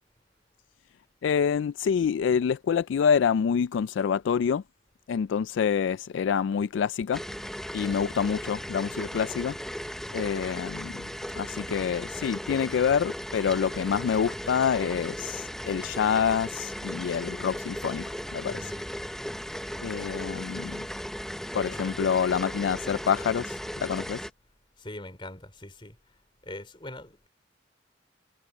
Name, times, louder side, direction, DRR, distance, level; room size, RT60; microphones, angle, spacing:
voice 1, 1.2-4.6 5.1-7.2 7.7-9.6 10.1-10.9 11.3-18.6 19.8-20.8 21.5-24.3, left 7 dB, 70° left, 0.3 m, -27 dB
sound 1, 7.1-24.3, equal, ahead, 0.6 m, -37 dB
voice 2, 18.5-18.9 20.1-20.2 21.7-21.9 24.8-26.0 26.4-27.3, left 1 dB, 25° left, 4.4 m, -42 dB
head